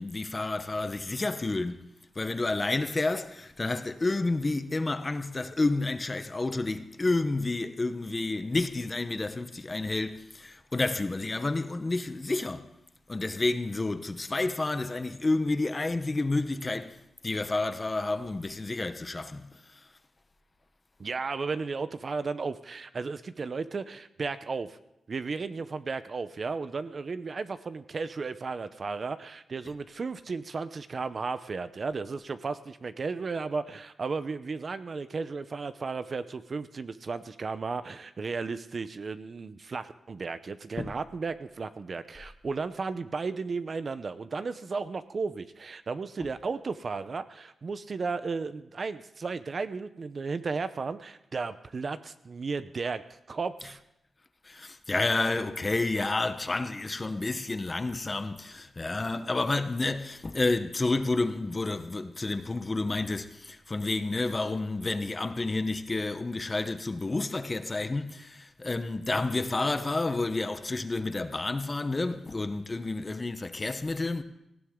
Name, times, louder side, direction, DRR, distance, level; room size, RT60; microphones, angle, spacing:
voice 1, 0.0-1.9 2.2-12.7 13.1-17.0 17.2-19.8 40.8-40.9 54.4-74.2, left 2 dB, 25° left, 0.9 m, -30 dB
voice 2, 21.0-24.8 25.1-53.8, right 4 dB, 45° right, 0.7 m, -34 dB
18.5 x 16.0 x 3.7 m
wide cardioid pair, 110°, 0 cm